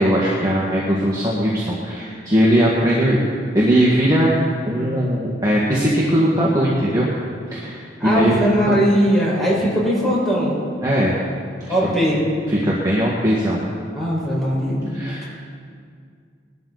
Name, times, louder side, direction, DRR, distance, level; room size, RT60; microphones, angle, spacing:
voice 1, 0.0-3.2 3.5-4.3 4.7-7.1 7.5-8.4 8.7-8.8 10.8-11.2 11.7-11.8 12.5-13.6 14.9-15.2, equal, 20° right, -6 dB, 1.9 m, -19 dB
voice 2, 8.0-10.5 11.7-12.2 13.9-14.8, equal, ahead, -6 dB, 5.0 m, -19 dB
20.5 x 12.5 x 4.1 m, 2.2 s
head